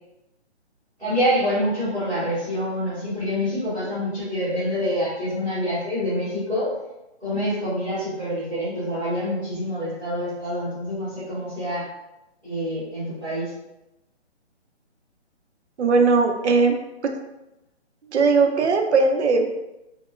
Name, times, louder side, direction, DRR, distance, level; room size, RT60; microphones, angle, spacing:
voice 1, 1.0-6.7 7.2-11.8 12.4-13.5, equal, 5° right, -23 dB, 0.7 m, -26 dB
voice 2, 15.8-16.7 17.0-17.1 18.1-19.5, right 4 dB, 75° right, 4 dB, 0.5 m, -19 dB
2.9 x 2.0 x 2.4 m, 0.93 s
hypercardioid pair, 170°, 34 cm